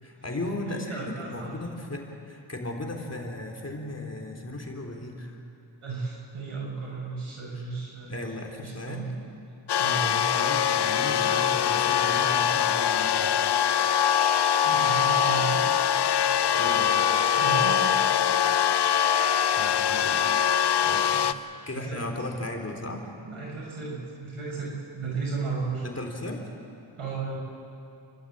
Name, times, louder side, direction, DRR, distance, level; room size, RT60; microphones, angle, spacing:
voice 1, 0.0-5.4 8.1-9.1 10.1-13.4 16.5-17.0 19.5-20.3 20.8-23.1 25.8-26.5, left 1 dB, 30° left, 2 dB, 3.4 m, -36 dB
voice 2, 0.6-1.5 5.8-8.2 8.6-9.2 9.8-10.3 14.6-15.6 17.4-18.0 21.1-21.3 21.6-22.0 23.2-25.9 27.0-27.4, right 4 dB, 90° right, -3 dB, 6.8 m, -34 dB
sound 1, 9.7-21.3, left 8 dB, 55° left, 0.7 m, -23 dB
29.5 x 12.5 x 8.7 m, 2.6 s
cardioid pair, 75°, 49 cm